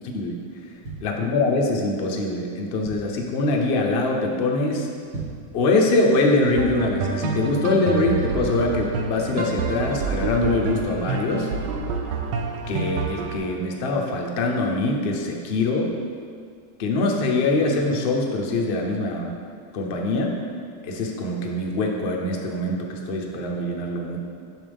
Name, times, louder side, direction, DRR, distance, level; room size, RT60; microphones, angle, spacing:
sound 1, 0.8-1.8 2.3-2.4 2.6-3.3 3.8-4.0 4.3-4.4 4.9-5.6 6.0-6.1, right 3 dB, 50° right, 2.1 m, -37 dB
voice 1, 1.0-4.9 5.5-11.5 12.7-15.9 16.8-19.3 19.7-20.4 20.8-24.2, left 2 dB, 60° left, 0 dB, 0.6 m, -23 dB
sound 2, 6.6-13.4, right 5 dB, 80° right, 1.2 m, -28 dB
7.3 x 5.4 x 3.4 m, 2.2 s
omnidirectional pair, 1.9 m